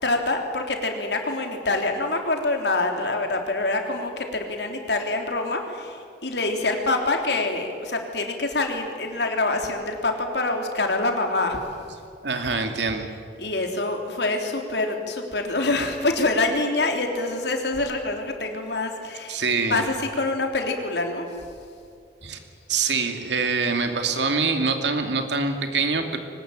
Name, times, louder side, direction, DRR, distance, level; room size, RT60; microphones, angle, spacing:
voice 1, 0.0-11.6 13.4-21.3, left 2 dB, 75° left, 3 dB, 3.5 m, -26 dB
voice 2, 12.2-13.1 19.3-19.8 22.2-22.4 22.7-26.2, right 4 dB, 85° right, 6 dB, 2.6 m, -24 dB
23.5 x 20.0 x 9.1 m, 2.5 s
head